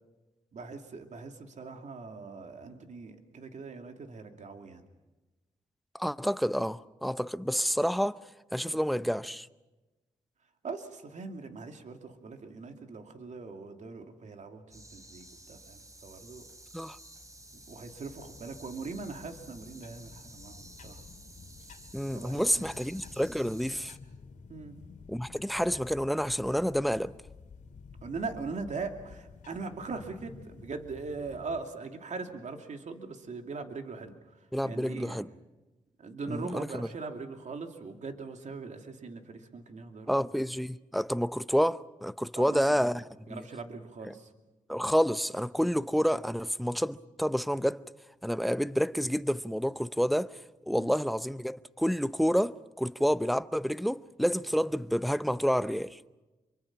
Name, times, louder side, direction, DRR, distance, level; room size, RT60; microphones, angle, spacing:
voice 1, 0.5-4.9 8.6-8.8 10.6-16.5 17.7-21.0 22.1-22.7 24.5-24.7 28.0-35.3 36.0-40.2 42.4-42.6 43.3-44.3 50.7-50.9, right 4 dB, 60° right, 2.7 m, -41 dB
voice 2, 5.9-8.2 8.5-9.5 16.7-17.0 21.9-23.9 25.1-27.2 34.5-35.3 36.3-36.9 40.1-43.0 43.3-43.4 44.0-44.1 44.7-47.8 48.2-50.4 50.7-56.2, equal, ahead, 0.8 m, -29 dB
sound 1, 14.7-24.0, right 1 dB, 25° right, 4.0 m, -52 dB
sound 2, 17.2-31.6, left 5 dB, 70° left, 2.4 m, -52 dB
26.0 x 24.0 x 6.1 m
cardioid pair, 60°, 13 cm